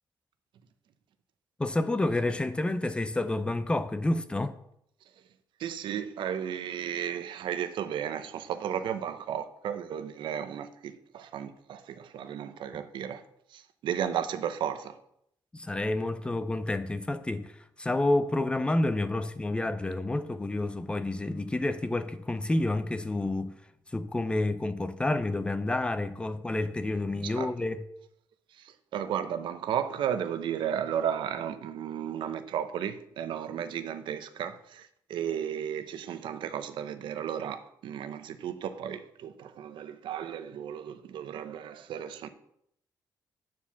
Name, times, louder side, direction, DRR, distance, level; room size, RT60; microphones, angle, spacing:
voice 1, 1.6-4.6 15.5-23.5 23.9-27.8, left 2 dB, 10° left, 0.5 m, -29 dB
voice 2, 5.6-13.2 13.5-14.9 27.2-27.5 28.6-42.3, right 9 dB, 75° right, 0.8 m, -34 dB
9.4 x 4.7 x 7.0 m
cardioid pair, 150°, 8 cm